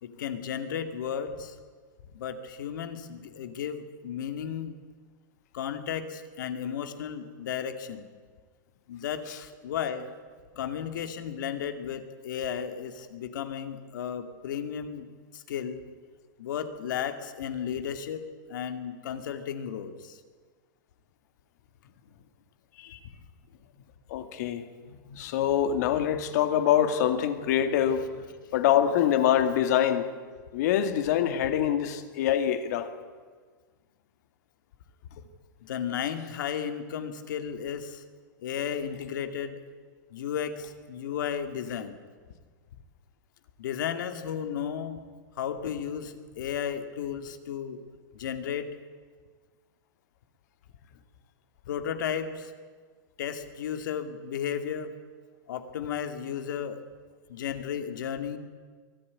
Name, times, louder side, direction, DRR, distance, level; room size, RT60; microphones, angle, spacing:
voice 1, 0.0-1.6 2.1-4.8 5.5-8.1 8.9-10.1 10.5-15.1 15.3-15.8 16.4-18.2 18.5-20.2 35.6-38.0 38.4-39.6 40.1-42.0 43.6-45.0 45.4-47.8 48.1-48.7 51.7-52.5 53.2-54.9 55.5-56.8 57.3-58.4, left 8 dB, 70° left, 8 dB, 2.3 m, -34 dB
voice 2, 24.1-28.2 28.5-30.1 30.5-32.9, left 10 dB, 55° left, 8 dB, 2.1 m, -25 dB
23.5 x 15.0 x 9.7 m, 1.6 s
supercardioid pair, 160°, 11 cm